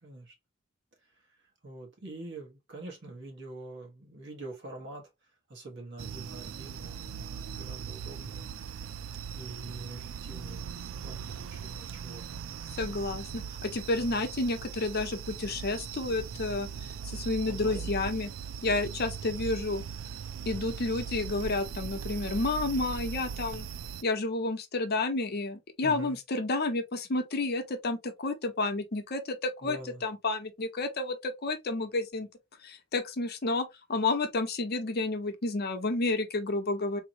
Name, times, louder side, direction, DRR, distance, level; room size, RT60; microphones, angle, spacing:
voice 1, 0.0-0.3 1.6-5.1 5.5-8.5 9.0-12.4 14.0-14.3 17.4-17.9 25.8-26.2 29.6-30.0, right 2 dB, 60° right, 1.5 m, -45 dB
sound 1, 6.0-24.0, right 7 dB, 75° right, 0.3 m, -39 dB
voice 2, 12.8-16.7 17.0-18.3 18.6-19.8 20.5-23.7 24.0-32.3 32.6-37.0, left 2 dB, 50° left, 0.8 m, -30 dB
3.9 x 2.9 x 2.8 m
head